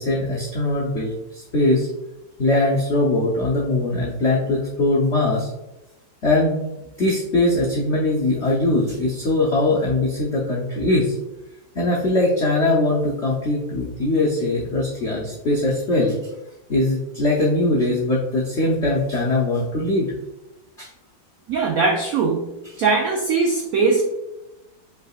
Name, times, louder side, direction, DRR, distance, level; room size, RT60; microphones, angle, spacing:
voice 1, 0.0-1.9 2.4-5.5 6.2-6.6 7.0-11.1 11.7-16.2 16.7-20.1 20.8-20.9, left 2 dB, 75° left, -4 dB, 0.6 m, -21 dB
voice 2, 21.5-24.0, right 4 dB, 85° right, 1 dB, 0.7 m, -21 dB
5.4 x 3.8 x 2.4 m, 0.96 s
omnidirectional pair, 2.2 m